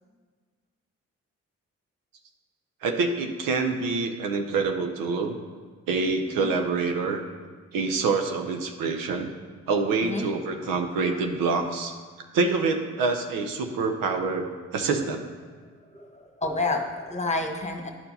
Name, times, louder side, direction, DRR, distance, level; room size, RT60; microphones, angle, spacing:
voice 1, 2.8-5.4 5.9-7.2 7.7-9.3 9.7-11.9 12.3-14.5 14.7-15.2, right 4 dB, 85° right, 5 dB, 0.7 m, -26 dB
voice 2, 15.6-17.9, left 2 dB, 20° left, 3 dB, 1.3 m, -30 dB
10.5 x 4.5 x 5.4 m, 1.5 s
supercardioid pair, 45°, 33 cm